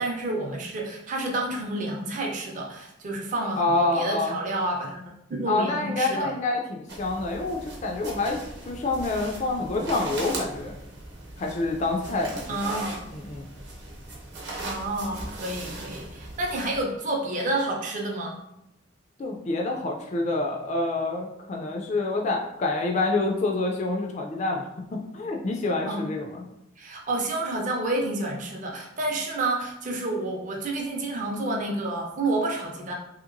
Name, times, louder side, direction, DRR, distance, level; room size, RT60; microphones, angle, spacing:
voice 1, 0.0-5.0 5.3-6.3 12.5-13.0 14.7-18.4 25.9-26.1 26.8-32.9, right 2 dB, 40° right, 0 dB, 0.5 m, -29 dB
voice 2, 3.6-4.4 5.5-8.4 8.7-10.7 11.4-12.4 13.1-13.5 19.2-24.7 25.1-26.4, left 2 dB, 35° left, 1 dB, 0.3 m, -27 dB
sound 1, 6.9-16.8, right 2 dB, 55° right, 0.8 m, -38 dB
2.8 x 2.8 x 2.5 m, 0.83 s
head